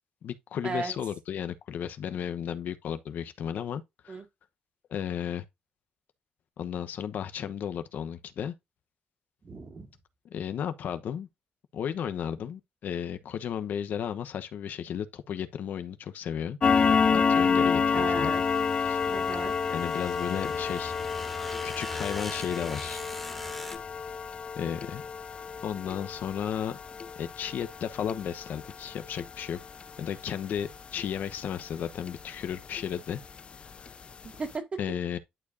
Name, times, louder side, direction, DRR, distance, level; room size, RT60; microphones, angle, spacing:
voice 1, 0.2-4.2 4.9-5.4 6.6-8.5 10.3-11.3 11.7-16.6 17.1-18.3 18.9-19.0 19.7-20.9 21.6-23.0 24.6-25.0 25.6-26.8 27.2-29.6 30.0-33.2 33.8-33.9 34.8-35.2, left 9 dB, 75° left, 1.0 m, -34 dB
voice 2, 9.4-9.9 17.9-18.4 19.1-19.6 34.3-34.8, right 3 dB, 40° right, 2.1 m, -35 dB
sound 1, 16.6-31.7 32.1-32.3 32.8-32.9 33.3-33.4 33.9-34.0 34.2-34.4, left 6 dB, 40° left, 0.4 m, -29 dB
sound 2, 17.9-23.8, left 1 dB, 5° left, 1.8 m, -42 dB
11.0 x 4.8 x 2.6 m
cardioid pair, 115°, 3 cm